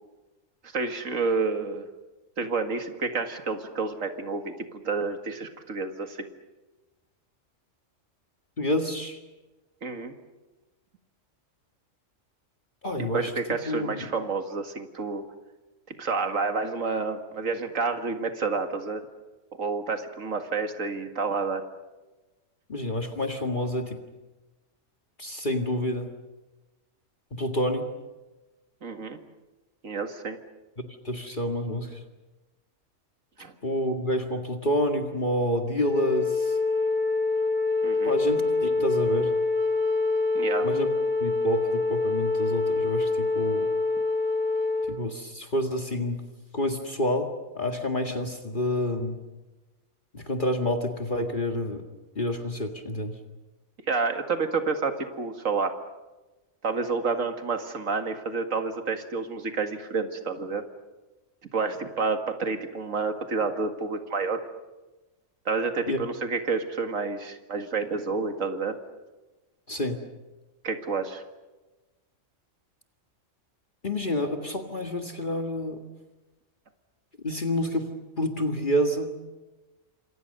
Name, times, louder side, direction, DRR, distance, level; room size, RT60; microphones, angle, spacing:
voice 1, 0.6-1.9 2.4-6.3 9.8-10.2 13.0-15.2 16.0-19.0 19.6-21.6 28.8-29.2 29.8-30.4 33.4-33.5 37.8-38.2 40.3-40.7 53.9-55.7 56.6-60.6 61.5-64.4 65.5-68.7 70.6-71.2, right 4 dB, 80° right, 6 dB, 2.3 m, -29 dB
voice 2, 8.6-9.2 12.8-13.3 13.7-14.1 22.7-24.0 25.2-26.1 27.3-27.9 30.8-32.0 33.6-36.6 38.0-39.4 40.6-40.9 41.2-43.7 44.9-46.2 46.5-49.2 50.1-51.8 52.2-53.1 65.9-66.0 69.7-70.0 73.8-75.8 77.2-77.9 78.2-79.1, left 1 dB, 40° left, 4 dB, 2.1 m, -28 dB
Wind instrument woodwind instrument, 35.8-44.9, left 3 dB, 25° right, 2.3 m, -25 dB
27.5 x 26.5 x 6.7 m, 1.1 s
omnidirectional pair, 1.4 m